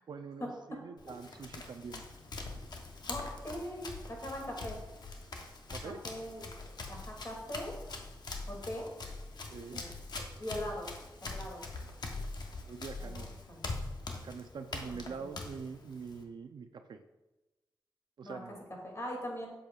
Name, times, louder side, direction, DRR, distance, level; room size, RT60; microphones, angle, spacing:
voice 1, 0.0-2.0 5.7-6.0 9.5-9.8 12.7-13.3 14.2-17.0 18.2-18.6, right 5 dB, 70° right, 7 dB, 0.5 m, -44 dB
Run, 1.0-16.2, left 3 dB, 60° left, 1.0 m, -43 dB
voice 2, 3.1-4.8 5.8-6.5 6.9-7.7 8.5-8.9 9.7-9.9 10.1-10.9 11.2-11.6 13.0-13.2 13.5-13.8 14.9-15.3 18.2-18.4 18.8-19.5, equal, 35° left, -1 dB, 2.5 m, -41 dB
7.8 x 7.0 x 2.4 m, 1.0 s
cardioid pair, 80°, 8 cm